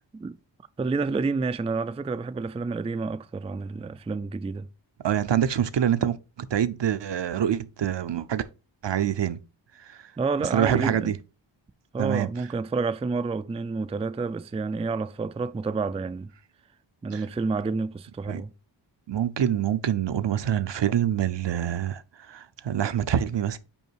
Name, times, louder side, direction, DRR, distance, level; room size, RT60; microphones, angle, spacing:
voice 1, 0.8-4.7 9.9-11.2 11.9-16.3 17.0-18.5, right 4 dB, 15° right, 0.3 m, -29 dB
voice 2, 5.0-6.2 6.5-8.4 8.8-9.4 10.5-11.1 12.0-12.3 17.1-17.2 18.3-18.4 19.1-23.6, right 9 dB, 65° right, 0.6 m, -25 dB
5.5 x 4.9 x 4.6 m
wide cardioid pair, 95°, 47 cm